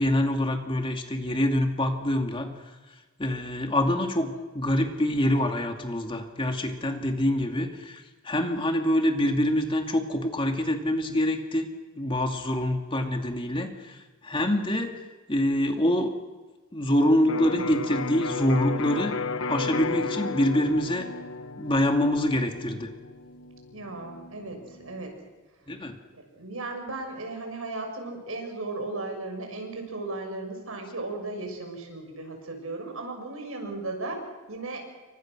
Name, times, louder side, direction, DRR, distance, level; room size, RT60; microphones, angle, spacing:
voice 1, 0.0-2.5 3.2-11.7 11.9-14.0 14.2-15.0 15.3-16.1 16.7-19.2 19.5-21.1 21.6-22.9 25.7-26.0, left 1 dB, 25° left, 4 dB, 2.5 m, -25 dB
Electric guitar, 17.3-25.0, left 4 dB, 75° left, 1.1 m, -34 dB
voice 2, 23.7-25.3 26.1-34.9, right 2 dB, 90° right, 4 dB, 6.3 m, -36 dB
29.0 x 25.0 x 6.3 m, 1.3 s
head